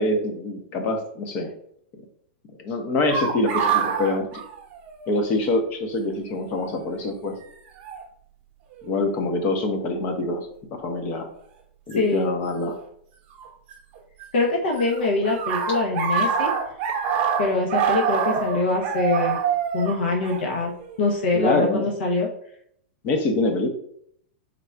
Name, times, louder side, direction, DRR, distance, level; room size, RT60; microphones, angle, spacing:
voice 1, 0.0-1.5 2.6-4.4 5.1-7.4 8.8-11.3 11.9-12.8 21.3-21.9 23.0-23.7, left 2 dB, 30° left, 6 dB, 0.7 m, -25 dB
sound 1, 3.1-5.2 5.5-5.6 6.5-6.8 7.8-8.0 8.8-9.3 11.9-12.0 13.4-14.2 14.5-21.1, right 7 dB, 35° right, 0.8 m, -26 dB
voice 2, 12.0-12.3 14.3-16.5 17.4-19.4 19.7-20.7 21.0-22.3, left 3 dB, 75° left, 0 dB, 0.9 m, -23 dB
3.7 x 2.4 x 4.3 m, 0.67 s
supercardioid pair, 155°, 6 cm